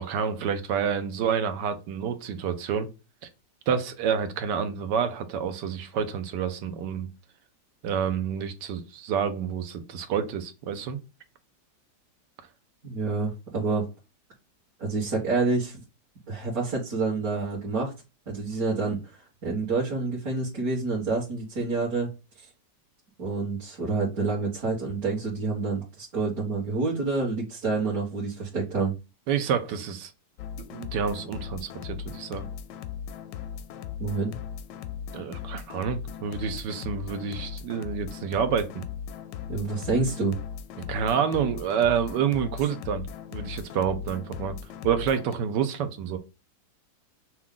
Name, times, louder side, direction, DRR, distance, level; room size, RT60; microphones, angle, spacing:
voice 1, 0.0-2.9 3.7-7.1 7.8-11.0 29.3-30.1 30.6-32.5 35.1-38.8 40.9-44.5 44.8-46.2, right 7 dB, 80° right, 1.4 m, -28 dB
voice 2, 12.8-13.9 14.8-15.8 16.3-17.9 18.3-22.1 22.4-22.5 23.2-28.9 34.0-34.4 39.5-40.4, right 3 dB, 55° right, 1.8 m, -28 dB
sound 1, 30.4-45.4, left 8 dB, 85° left, 1.2 m, -38 dB
6.0 x 2.3 x 3.7 m
omnidirectional pair, 1.9 m